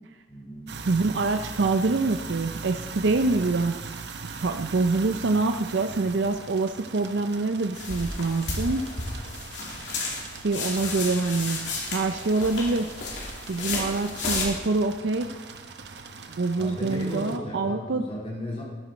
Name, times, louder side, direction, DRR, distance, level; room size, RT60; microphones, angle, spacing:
voice 1, 0.3-0.7 16.6-18.6, equal, 35° left, -4 dB, 3.4 m, -35 dB
sound 1, 0.7-17.4, right 4 dB, 70° right, 0.9 m, -41 dB
voice 2, 0.8-3.8 4.4-8.8 10.4-11.6 11.9-12.9 13.5-15.3 16.3-18.0, right 3 dB, 90° right, 7 dB, 0.6 m, -25 dB
sound 2, 7.7-14.5, left 3 dB, 85° left, 2.6 m, -33 dB
13.5 x 11.5 x 4.0 m, 1.2 s
head